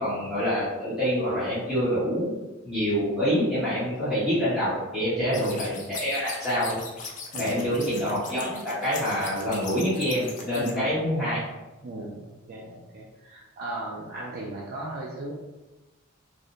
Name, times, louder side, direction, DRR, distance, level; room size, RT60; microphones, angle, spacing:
voice 1, 0.0-2.4 2.6-6.8 7.4-11.4, equal, ahead, -15 dB, 0.8 m, -26 dB
voice 2, 5.2-5.6 7.3-7.9 10.6-11.0 11.8-15.3, right 1 dB, 45° right, -4 dB, 0.3 m, -36 dB
sound 1, 5.3-10.7, left 4 dB, 35° left, 0.3 m, -39 dB
2.5 x 2.1 x 2.8 m, 1.1 s
head